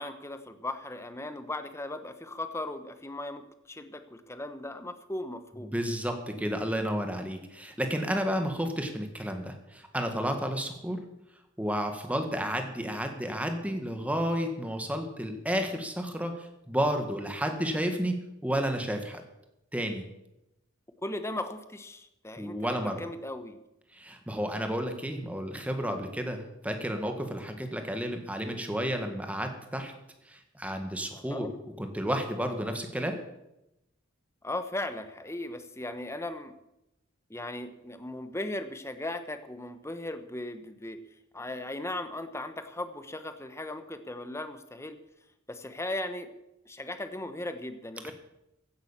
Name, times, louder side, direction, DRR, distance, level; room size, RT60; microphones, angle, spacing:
voice 1, 0.0-3.4 3.7-5.7 21.0-23.6 31.1-31.5 34.4-36.5 37.3-41.0 41.3-45.0 45.5-46.3 46.7-48.1, left 1 dB, 15° left, 9 dB, 1.0 m, -37 dB
voice 2, 5.7-11.0 11.6-18.1 18.4-19.2 19.7-20.0 22.4-23.0 23.9-29.9 30.2-31.5 31.8-33.2 48.0-48.1, equal, 5° right, 5 dB, 1.7 m, -31 dB
16.0 x 8.9 x 7.3 m, 0.90 s
head